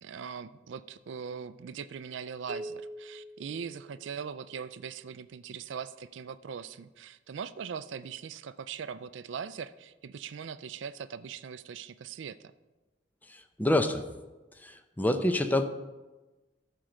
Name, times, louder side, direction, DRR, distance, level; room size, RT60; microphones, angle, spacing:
voice 1, 0.0-12.4, right 7 dB, 70° right, 13 dB, 0.4 m, -41 dB
sound 1, 2.5-4.4, right 1 dB, 35° right, 0.6 m, -43 dB
voice 2, 13.3-14.1 14.6-15.6, left 1 dB, 10° left, 8 dB, 0.6 m, -27 dB
13.0 x 4.6 x 6.4 m, 1.1 s
head